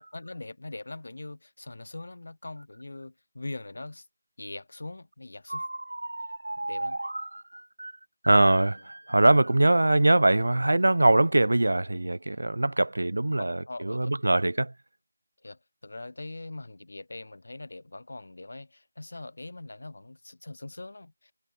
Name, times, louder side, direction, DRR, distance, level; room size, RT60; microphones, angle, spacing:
voice 1, 0.0-4.0 4.4-5.7 6.7-7.0 13.4-14.1 15.4-21.3, left 2 dB, 50° left, 2.7 m, -42 dB
voice 2, 5.5-7.9 8.2-14.7, right 2 dB, 75° right, 0.6 m, -23 dB
figure-of-eight pair, 180°, 0 cm